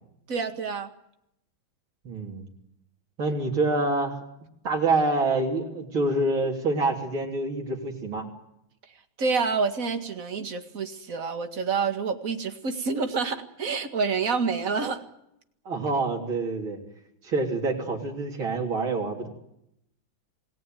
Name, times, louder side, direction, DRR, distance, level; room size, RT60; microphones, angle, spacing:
voice 1, 0.3-0.9 9.2-15.0, right 5 dB, 45° right, 7 dB, 2.3 m, -28 dB
voice 2, 2.0-2.5 3.2-4.2 4.6-8.3 15.7-16.8 17.2-19.3, right 2 dB, 90° right, -1 dB, 4.3 m, -26 dB
28.0 x 19.0 x 9.2 m, 0.82 s
omnidirectional pair, 2.2 m